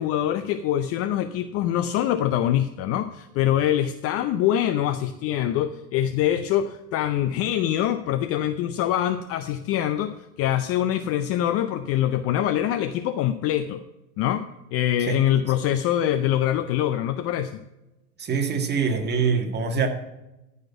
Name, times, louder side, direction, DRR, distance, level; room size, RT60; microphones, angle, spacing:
voice 1, 0.0-13.8 14.2-17.6, left 11 dB, 30° left, 10 dB, 0.5 m, -24 dB
voice 2, 18.2-19.9, right 5 dB, 20° right, 4 dB, 1.8 m, -24 dB
13.5 x 5.7 x 5.8 m, 0.95 s
hypercardioid pair, 90°, 48 cm